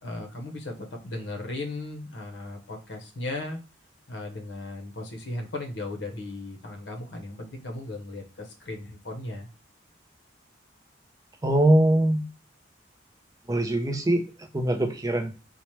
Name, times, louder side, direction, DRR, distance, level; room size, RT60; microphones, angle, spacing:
voice 1, 0.0-3.6 4.1-9.5, left 2 dB, 70° left, 3 dB, 0.7 m, -36 dB
voice 2, 11.4-12.2 13.5-14.2 14.5-15.3, right 1 dB, 20° right, 4 dB, 0.4 m, -22 dB
2.9 x 2.1 x 3.0 m, 0.32 s
head